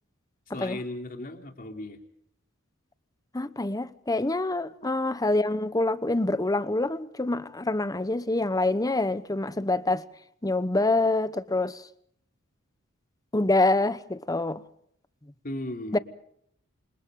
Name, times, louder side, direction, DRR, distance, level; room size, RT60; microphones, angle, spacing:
voice 1, 0.5-2.0 15.4-16.0, left 1 dB, 45° left, 3.2 m, -36 dB
voice 2, 3.3-10.0 10.4-11.8 13.3-14.6 15.9-16.0, left 2 dB, 15° left, 1.0 m, -26 dB
29.0 x 26.0 x 3.8 m
head